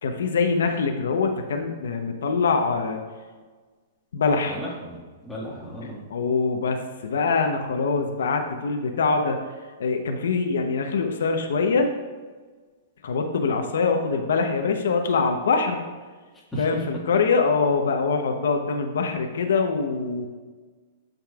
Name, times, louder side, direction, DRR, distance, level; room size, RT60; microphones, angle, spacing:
voice 1, 0.0-3.0 4.1-4.6 5.8-9.4 9.8-11.9 13.0-15.8 16.6-20.3, left 4 dB, 85° left, 4 dB, 0.8 m, -24 dB
voice 2, 4.5-5.0 5.2-6.0 16.5-16.7, equal, 5° left, -7 dB, 1.8 m, -34 dB
13.0 x 5.2 x 2.4 m, 1.4 s
hypercardioid pair, 155°, 0 cm